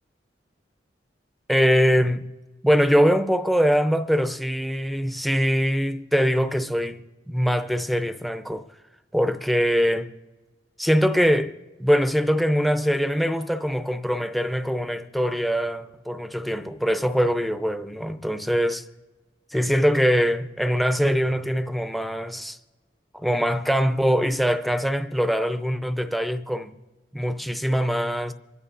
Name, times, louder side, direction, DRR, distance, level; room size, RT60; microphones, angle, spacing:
voice 1, 1.5-2.3 2.6-8.6 9.1-10.1 10.8-18.9 19.5-22.6 23.1-26.7 27.1-28.3, equal, ahead, 0.5 m, -23 dB
26.5 x 14.0 x 2.5 m
head